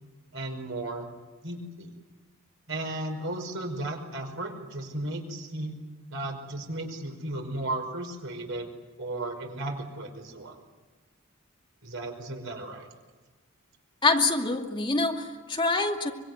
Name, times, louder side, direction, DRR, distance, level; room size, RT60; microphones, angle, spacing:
voice 1, 0.3-1.1 1.4-1.9 2.7-5.8 6.1-8.7 9.0-10.6 11.8-12.9, right 2 dB, 65° right, 3 dB, 5.5 m, -35 dB
voice 2, 14.0-16.1, left 3 dB, 25° left, 2 dB, 2.5 m, -25 dB
25.5 x 22.5 x 9.5 m, 1.3 s
head